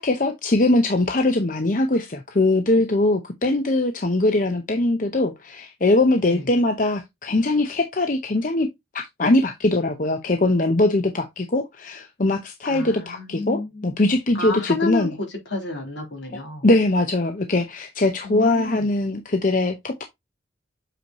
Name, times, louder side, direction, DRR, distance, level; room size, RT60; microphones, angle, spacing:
voice 1, 0.0-8.7 8.9-15.1 16.6-20.0, left 2 dB, 45° left, 0.8 m, -21 dB
voice 2, 12.6-14.0 14.3-16.7 18.2-18.9, left 3 dB, 75° left, 3.5 m, -30 dB
7.9 x 4.7 x 2.9 m
head